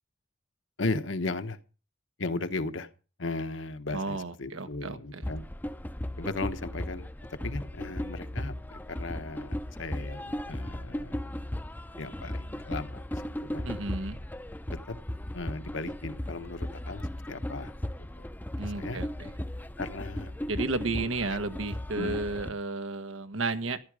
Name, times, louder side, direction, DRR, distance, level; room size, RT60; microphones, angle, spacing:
voice 1, 0.8-1.6 2.2-2.9 3.2-5.4 6.2-11.3 12.0-13.7 14.7-15.0 15.3-17.7 18.0-18.3 18.7-19.0 19.8-20.4 21.9-22.2, left 3 dB, 70° left, 1.2 m, -36 dB
voice 2, 3.9-5.2 13.6-14.2 18.5-19.3 20.5-23.8, right 3 dB, 85° right, 1.5 m, -33 dB
sound 1, 5.2-22.5, left 1 dB, 10° left, 0.6 m, -36 dB
14.5 x 11.5 x 5.0 m
head